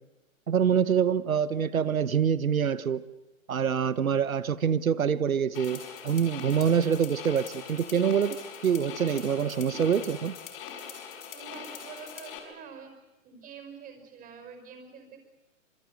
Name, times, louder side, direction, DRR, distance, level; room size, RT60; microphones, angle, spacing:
voice 1, 0.5-3.0 3.5-8.4 8.6-10.3, right 7 dB, 90° right, 1.2 m, -25 dB
sound 1, 5.5-12.4, left 8 dB, 40° left, 6.0 m, -42 dB
voice 2, 11.3-12.9 13.2-15.2, right 6 dB, 20° right, 5.1 m, -46 dB
26.5 x 22.5 x 8.0 m
hypercardioid pair, 140°, 40 cm